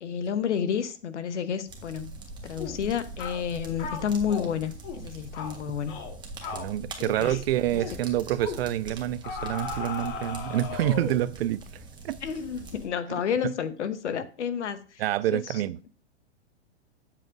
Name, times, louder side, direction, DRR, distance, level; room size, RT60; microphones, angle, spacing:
voice 1, 0.0-2.2 2.4-5.9 7.0-7.4 7.7-7.8 12.2-15.0 15.3-15.6, left 8 dB, 80° left, 1.0 m, -30 dB
sound 1, 1.7-12.9, right 2 dB, 15° right, 1.3 m, -42 dB
sound 2, 2.6-2.8 3.2-3.4 3.8-4.5 4.8-5.1 5.3-5.6 5.9-6.1 6.4-6.7 7.1-7.4 7.7-8.0 8.4-8.6 9.2-11.3, left 5 dB, 45° left, 1.7 m, -36 dB
voice 2, 6.5-11.6 12.0-12.2 15.0-15.9, right 13 dB, 60° right, 0.5 m, -27 dB
9.1 x 7.4 x 2.6 m
hypercardioid pair, 130°, 35 cm